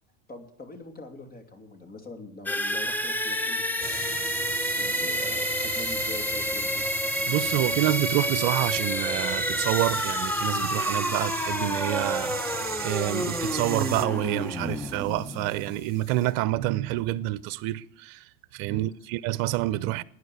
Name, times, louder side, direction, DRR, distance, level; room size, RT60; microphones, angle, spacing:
voice 1, 0.3-4.1 4.8-6.9 18.7-18.9, left 2 dB, 25° left, 2.8 m, -43 dB
sound 1, 2.5-16.2, left 1 dB, 5° left, 0.8 m, -29 dB
sound 2, 3.8-16.3, left 4 dB, 45° left, 7.7 m, -53 dB
sound 3, 3.8-14.1, right 9 dB, 25° right, 0.9 m, -36 dB
voice 2, 7.3-18.3 18.5-20.0, right 16 dB, 55° right, 0.8 m, -28 dB
12.5 x 9.8 x 8.6 m
hypercardioid pair, 105°, 39 cm